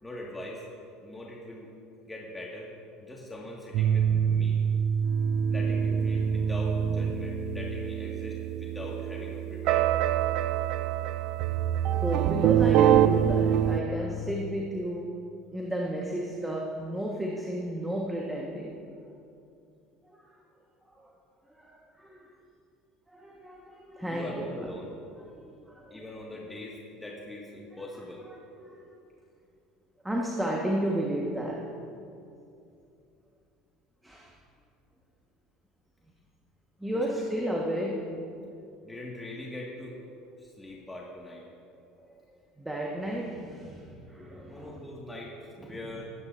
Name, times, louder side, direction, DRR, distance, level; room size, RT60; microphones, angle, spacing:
voice 1, 0.0-0.6 1.0-1.7 2.1-2.7 3.0-4.6 5.5-9.9 24.0-25.0 25.9-28.3 36.9-37.0 38.8-40.0 40.4-41.5 44.5-46.0, left 1 dB, 15° left, -3 dB, 1.9 m, -42 dB
sound 1, 3.7-13.8, right 9 dB, 60° right, 0.4 m, -25 dB
voice 2, 10.3-10.9 11.9-15.1 15.5-18.7 20.1-20.4 21.0-21.1 21.5-22.3 23.1-24.7 25.3-26.1 28.6-28.9 30.0-31.7 32.1-32.3 34.0-34.4 36.8-38.2 42.0-42.1 42.6-44.8 45.6-45.8, right 1 dB, 10° right, -2 dB, 1.5 m, -33 dB
20.5 x 9.5 x 2.7 m, 2.5 s
hypercardioid pair, 70°, 0 cm